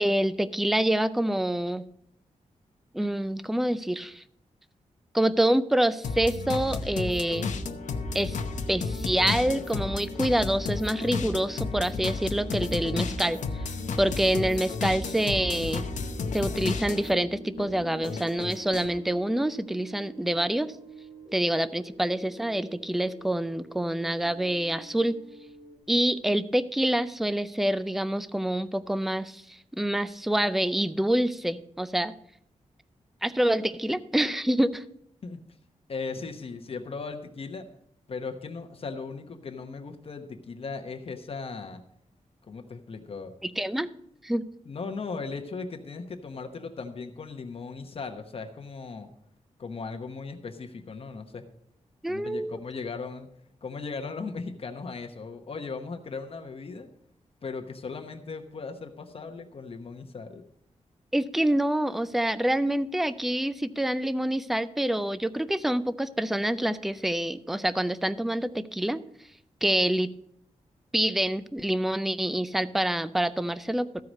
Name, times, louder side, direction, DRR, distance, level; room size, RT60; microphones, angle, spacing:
voice 1, 0.0-1.8 2.9-4.2 5.1-7.5 8.1-8.4 8.7-13.4 14.0-15.9 16.3-20.7 21.3-25.1 25.9-32.1 33.2-34.8 43.4-43.9 44.2-44.4 52.0-52.6 61.1-69.0 69.6-70.1 70.9-73.9, right 1 dB, ahead, 14 dB, 0.4 m, -26 dB
sound 1, 6.0-17.2 17.6-19.0, left 4 dB, 75° left, 0.8 m, -33 dB
sound 2, 7.5-25.8, right 1 dB, 80° right, 2.5 m, -45 dB
voice 2, 35.9-37.7 38.1-41.8 42.5-43.3 44.7-49.1 49.6-51.4 52.1-53.3 53.6-56.9 57.4-60.4, left 4 dB, 50° left, 5 dB, 0.9 m, -37 dB
14.0 x 4.7 x 6.3 m, 0.71 s
wide cardioid pair, 130°, 13 cm